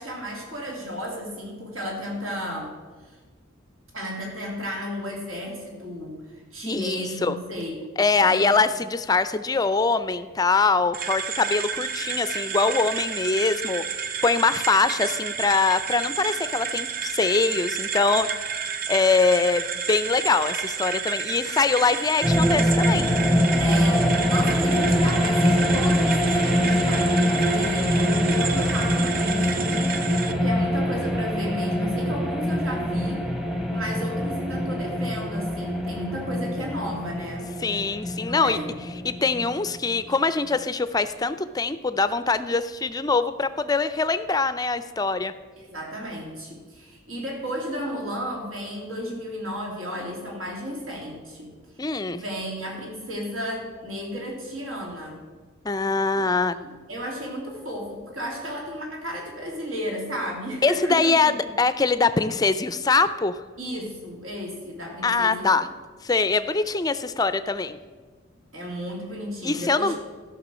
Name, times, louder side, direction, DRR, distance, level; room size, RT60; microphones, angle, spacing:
voice 1, 0.0-2.7 3.1-3.2 3.9-7.9 8.2-8.5 23.6-33.3 33.7-37.5 38.3-38.8 45.6-51.5 52.1-55.2 56.3-61.1 63.6-65.5 68.5-70.0, equal, 85° right, -1 dB, 3.0 m, -33 dB
voice 2, 6.6-7.4 8.0-13.8 14.2-18.5 18.9-23.1 37.6-38.6 39.0-45.3 51.8-52.2 55.6-56.6 60.6-63.4 65.0-65.7 66.0-67.8 69.4-69.9, left 4 dB, 20° left, 12 dB, 0.4 m, -23 dB
sound 1, 10.9-30.3, right 7 dB, 45° right, 0.6 m, -31 dB
sound 2, 22.2-39.9, equal, ahead, 0.8 m, -24 dB
13.5 x 6.1 x 6.2 m, 1.5 s
head